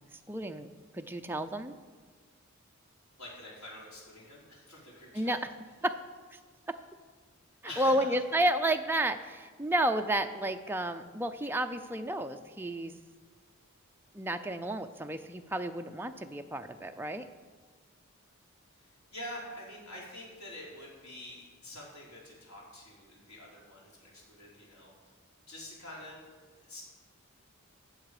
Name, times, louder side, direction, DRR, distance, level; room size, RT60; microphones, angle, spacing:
voice 1, 0.3-0.7 0.9-1.7 5.1-5.4 5.8-6.0 6.3-6.4 6.7-6.8 7.8-13.0 14.1-17.3, right 1 dB, 10° right, 6 dB, 0.4 m, -31 dB
voice 2, 3.2-5.4 7.7-8.1 18.8-25.1 25.4-26.2 26.6-26.8, left 1 dB, 85° left, -5 dB, 3.9 m, -46 dB
15.5 x 6.9 x 4.9 m, 1.5 s
head